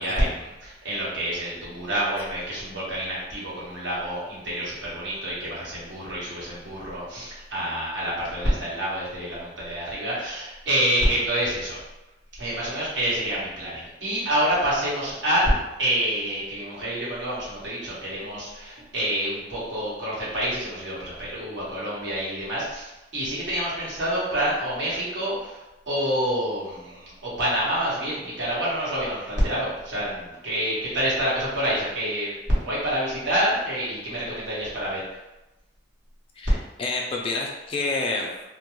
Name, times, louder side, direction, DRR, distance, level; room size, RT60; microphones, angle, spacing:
voice 1, 0.0-11.8 12.4-15.5 15.8-32.3 32.6-35.0, equal, 80° right, -7 dB, 1.0 m, -27 dB
voice 2, 36.4-38.4, left 3 dB, 30° left, -1 dB, 0.3 m, -29 dB
2.3 x 2.2 x 2.9 m, 1.0 s
head